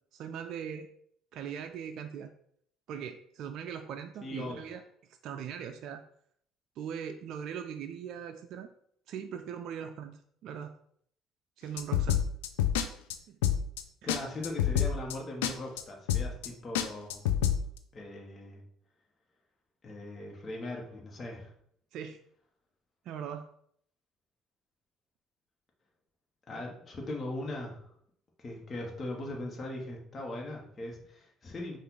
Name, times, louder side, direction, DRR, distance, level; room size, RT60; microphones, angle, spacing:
voice 1, 0.1-0.9 1.3-2.3 2.9-4.8 5.2-6.0 6.8-8.7 9.1-10.7 11.6-12.2 13.3-13.4 14.0-14.2 21.9-22.2 23.1-23.5, right 8 dB, 65° right, 6 dB, 0.3 m, -40 dB
voice 2, 4.2-4.6 14.0-17.3 17.9-18.6 19.8-21.5 26.5-27.9 28.4-31.8, left 1 dB, 40° left, -1 dB, 1.2 m, -39 dB
sound 1, 11.8-12.8 13.1-13.2 13.4-13.8 14.1-14.2 14.4-15.1 15.4-15.5 15.8-15.9 16.1-16.5 16.7-17.6, left 10 dB, 85° left, 0.3 m, -27 dB
5.6 x 2.5 x 3.8 m, 0.66 s
hypercardioid pair, 60°, 0 cm